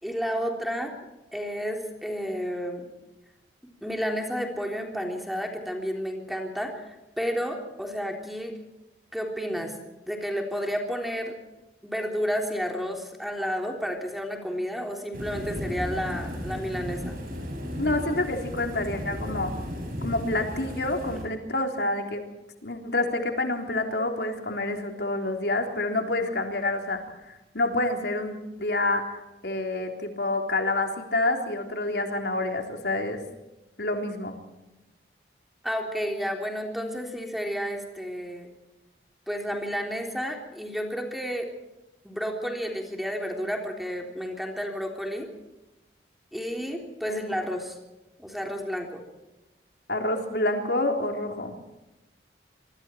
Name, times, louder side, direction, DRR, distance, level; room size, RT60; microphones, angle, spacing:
voice 1, 0.0-0.9 1.3-2.8 3.8-8.5 9.1-9.7 10.1-11.3 11.8-17.2 21.1-21.2 35.6-38.5 39.3-41.5 42.0-45.3 46.3-47.8 48.2-49.0, equal, ahead, 2 dB, 3.5 m, -31 dB
sound 1, 15.1-21.2, equal, 50° right, 7.4 m, -35 dB
voice 2, 17.8-19.5 20.0-22.2 22.6-27.0 27.3-29.1 29.4-33.2 33.8-34.4 47.1-47.3 49.9-51.6, left 2 dB, 70° left, 3 dB, 3.7 m, -28 dB
25.5 x 24.5 x 4.5 m, 1.0 s
head